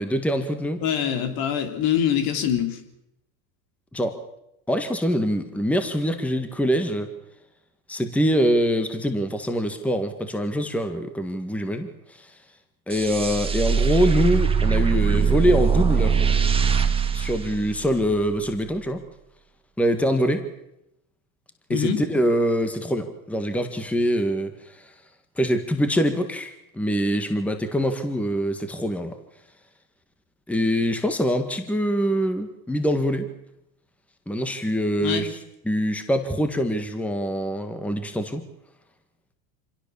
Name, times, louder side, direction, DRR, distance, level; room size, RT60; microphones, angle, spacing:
voice 1, 0.0-0.8 3.9-4.2 4.7-7.1 7.9-12.3 12.9-16.2 17.1-19.0 19.8-20.5 21.7-24.9 25.4-29.2 30.5-33.3 34.3-35.4 35.7-38.4, equal, 5° left, 8 dB, 1.7 m, -24 dB
voice 2, 0.8-2.8 21.7-22.0 35.0-35.3, left 9 dB, 55° left, 7 dB, 3.5 m, -24 dB
sound 1, 12.9-18.2, right 6 dB, 15° right, 1.9 m, -22 dB
26.0 x 18.0 x 7.1 m, 0.84 s
supercardioid pair, 125°, 42 cm